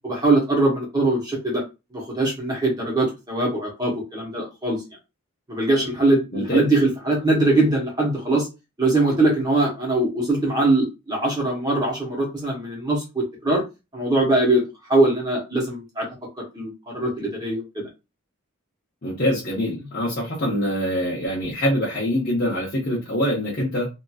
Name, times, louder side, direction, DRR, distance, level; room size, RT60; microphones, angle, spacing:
voice 1, 0.0-1.6 1.9-4.8 5.5-8.5 8.8-13.6 13.9-16.1 16.5-17.9, right 2 dB, 20° right, -3 dB, 1.0 m, -22 dB
voice 2, 6.3-6.6 19.0-23.9, equal, 40° left, -5 dB, 0.7 m, -24 dB
2.8 x 2.6 x 2.3 m, 0.26 s
head